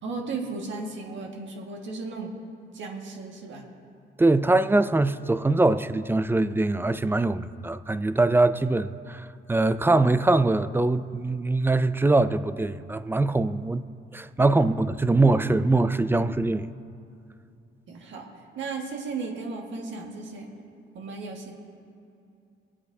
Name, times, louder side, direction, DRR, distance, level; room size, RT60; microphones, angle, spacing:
voice 1, 0.0-2.3 2.7-3.7 17.9-18.3 18.6-20.5 20.9-21.5, right 4 dB, 70° right, 1.8 m, -35 dB
voice 2, 4.2-13.8 14.1-16.7, right 2 dB, 10° right, 0.3 m, -23 dB
23.0 x 8.5 x 2.7 m
cardioid pair, 90°, 20 cm